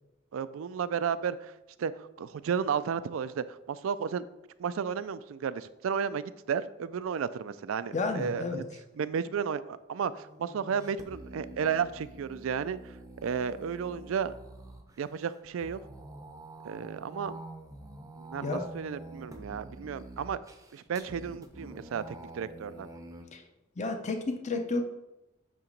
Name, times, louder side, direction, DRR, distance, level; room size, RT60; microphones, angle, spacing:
voice 1, 0.3-1.5 1.8-4.3 4.6-8.6 9.0-13.0 13.2-14.3 15.0-15.8 16.6-17.4 18.2-20.4 20.7-22.9, right 7 dB, 85° right, 15 dB, 0.4 m, -33 dB
voice 2, 7.9-8.6 18.4-18.7 23.3-23.4 23.8-24.8, left 3 dB, 35° left, 5 dB, 0.6 m, -31 dB
sound 1, 10.0-23.3, right 2 dB, 15° right, 0.6 m, -47 dB
8.4 x 2.9 x 5.2 m, 0.96 s
head